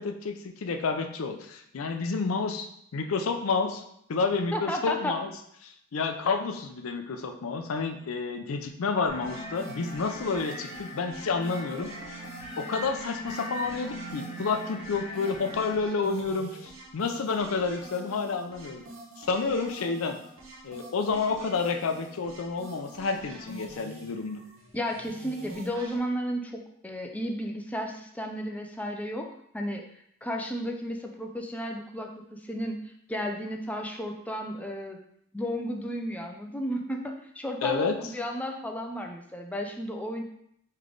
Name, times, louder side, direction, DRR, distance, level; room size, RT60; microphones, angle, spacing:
voice 1, 0.0-2.7 2.9-3.8 4.1-5.3 5.6-11.9 12.6-18.8 19.2-20.2 20.6-24.4 37.6-38.0, left 4 dB, 75° left, 5 dB, 0.5 m, -30 dB
voice 2, 4.5-5.2 24.7-29.3 29.5-29.8 30.2-32.8 33.1-35.0 35.3-40.2, equal, 5° left, 2 dB, 0.4 m, -33 dB
sound 1, 9.1-15.7, equal, 25° left, 0.9 m, -41 dB
sound 2, 9.2-26.0, right 1 dB, 70° right, 0.9 m, -46 dB
3.3 x 3.2 x 3.8 m, 0.71 s
head